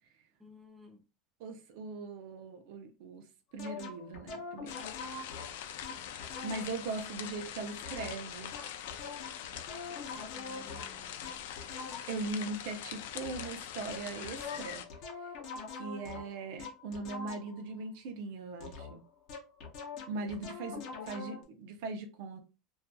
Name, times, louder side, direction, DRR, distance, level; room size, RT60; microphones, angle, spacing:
voice 1, 0.4-1.0 10.3-11.5 20.0-20.5, left 2 dB, 5° right, 0.5 m, -56 dB
voice 2, 1.4-3.3 3.5-4.7 6.4-8.6 12.1-14.8 15.7-19.0 20.1-22.4, right 3 dB, 65° right, 0.5 m, -40 dB
sound 1, 3.6-6.8 7.8-12.3 13.2-13.6 13.9-17.7 18.6-21.4, left 4 dB, 50° left, 0.6 m, -44 dB
sound 2, 4.7-14.8, left 10 dB, 90° left, 0.3 m, -43 dB
2.7 x 2.3 x 2.2 m
supercardioid pair, 150°, 0 cm